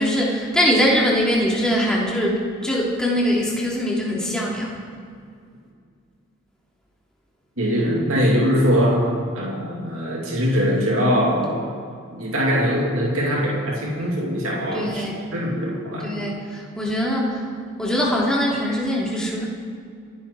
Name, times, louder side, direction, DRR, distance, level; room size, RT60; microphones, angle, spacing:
voice 1, 0.0-4.7 14.7-15.3 16.0-17.5 17.8-19.4, equal, 5° left, -4 dB, 2.6 m, -22 dB
voice 2, 7.6-9.1 9.3-11.7 12.1-15.0 15.3-16.1, equal, 75° right, -4 dB, 2.8 m, -22 dB
27.0 x 11.0 x 4.1 m, 2.2 s
head